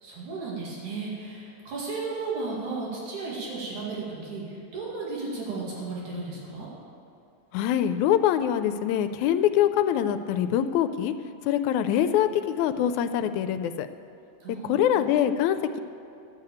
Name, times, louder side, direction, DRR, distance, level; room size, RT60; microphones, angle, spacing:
voice 1, 0.0-6.7 14.4-15.1, right 3 dB, 90° right, -5 dB, 3.8 m, -34 dB
voice 2, 7.5-11.1 11.4-13.9 14.6-15.8, left 10 dB, 85° left, 10 dB, 1.9 m, -24 dB
12.5 x 6.7 x 8.4 m, 2.5 s
omnidirectional pair, 3.3 m